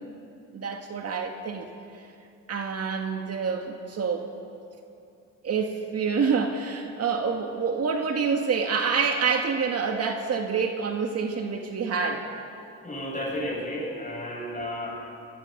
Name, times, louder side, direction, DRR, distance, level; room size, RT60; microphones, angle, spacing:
voice 1, 0.5-1.7 2.5-4.3 5.4-12.3, right 5 dB, 55° right, 3 dB, 2.0 m, -27 dB
voice 2, 12.8-15.0, left 1 dB, 25° left, -1 dB, 7.5 m, -32 dB
23.5 x 19.0 x 7.0 m, 2.6 s
cardioid pair, 90°, 30 cm